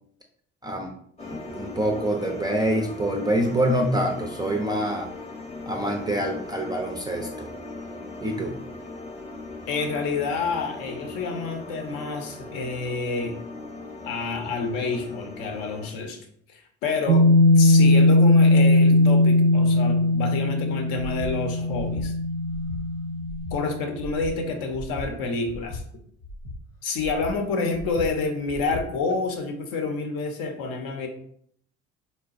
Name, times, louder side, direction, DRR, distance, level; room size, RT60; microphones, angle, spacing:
sound 1, 1.2-15.9, left 2 dB, 15° left, 0.8 m, -39 dB
voice 1, 1.2-5.1 5.7-7.5 8.2-8.6, right 1 dB, 10° right, 1 dB, 0.3 m, -26 dB
voice 2, 9.7-13.3 14.0-22.1 23.5-25.8 26.8-31.1, left 4 dB, 60° left, 4 dB, 0.7 m, -29 dB
sound 2, 17.1-23.8, left 2 dB, 90° right, 0.5 m, -19 dB
Breathing, 20.9-21.3 21.7-22.1 22.4-22.8 23.2-23.6 24.0-24.3 24.7-25.1 25.5-25.8 26.2-26.6 27.0-27.3 27.7-28.1 28.5-28.8, left 1 dB, 85° left, 1.1 m, -37 dB
3.9 x 2.2 x 2.4 m, 0.65 s
hypercardioid pair, 55°, 38 cm